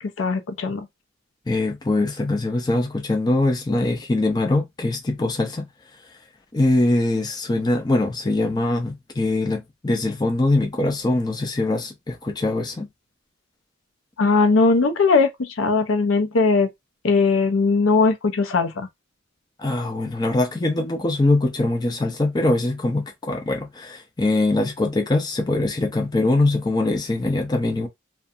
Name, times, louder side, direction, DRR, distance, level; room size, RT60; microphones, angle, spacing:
voice 1, 0.2-0.8 14.2-16.7 17.0-18.9, left 4 dB, 70° left, 0.5 m, -19 dB
voice 2, 1.5-5.6 6.5-12.9 19.6-27.9, left 2 dB, 20° left, 0.4 m, -22 dB
2.4 x 2.2 x 2.6 m
head